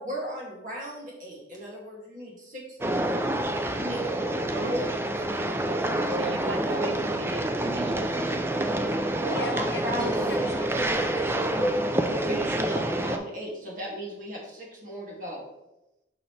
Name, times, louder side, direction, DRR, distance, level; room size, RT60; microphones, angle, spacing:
voice 1, 0.0-2.8 3.8-4.0 4.7-4.9 6.1-6.3 6.5-6.8 9.1-10.3 12.0-15.4, equal, 45° right, -3 dB, 2.2 m, -35 dB
sound 1, 2.8-13.2, right 1 dB, 15° right, 0.4 m, -27 dB
voice 2, 4.5-4.9 6.2-8.0, right 2 dB, 90° right, 7 dB, 0.7 m, -37 dB
voice 3, 9.3-11.4, left 3 dB, 65° left, 5 dB, 0.9 m, -40 dB
6.5 x 5.7 x 3.3 m, 0.92 s
head